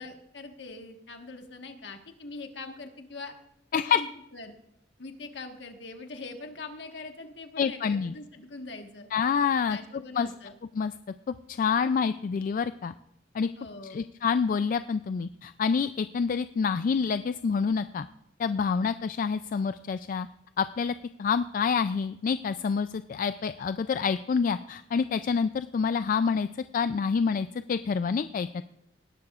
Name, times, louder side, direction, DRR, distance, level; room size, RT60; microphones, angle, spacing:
voice 1, 0.0-3.3 3.7-4.5 5.0-9.1 9.6-10.6 13.6-14.0, left 3 dB, 65° left, 5 dB, 1.4 m, -42 dB
voice 2, 7.6-8.1 9.1-9.8 10.2-10.3 10.7-10.9 11.3-12.9 13.3-13.5 13.9-18.1 18.4-20.3 20.6-26.5 26.7-28.6, left 6 dB, 45° left, 12 dB, 0.3 m, -27 dB
18.5 x 11.5 x 2.4 m, 0.81 s
head